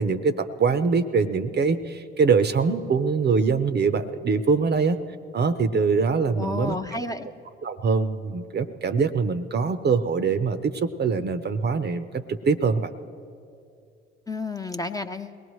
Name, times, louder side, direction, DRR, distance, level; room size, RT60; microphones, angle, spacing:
voice 1, 0.0-5.0 5.3-6.8 7.6-12.9, right 5 dB, 35° right, 11 dB, 0.7 m, -23 dB
voice 2, 6.3-7.3 14.3-15.4, left 3 dB, 10° left, 6 dB, 0.7 m, -31 dB
22.0 x 18.0 x 3.1 m, 2.5 s
hypercardioid pair, 60°, 29 cm